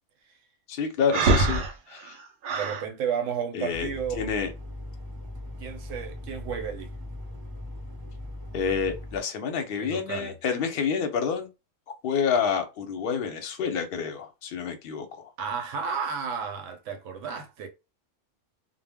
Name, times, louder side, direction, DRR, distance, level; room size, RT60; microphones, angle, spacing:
voice 1, 0.7-2.2 3.5-3.9 4.2-4.5 8.5-11.5 12.0-15.3, left 6 dB, 55° left, 0.7 m, -28 dB
Breathing, 1.1-2.9, right 3 dB, 60° right, 0.7 m, -24 dB
voice 2, 2.5-4.3 5.6-6.9 9.7-10.3 15.4-17.7, right 7 dB, 80° right, 0.9 m, -32 dB
sound 1, 3.7-9.2, left 1 dB, 30° right, 0.4 m, -39 dB
2.1 x 2.0 x 3.4 m
omnidirectional pair, 1.3 m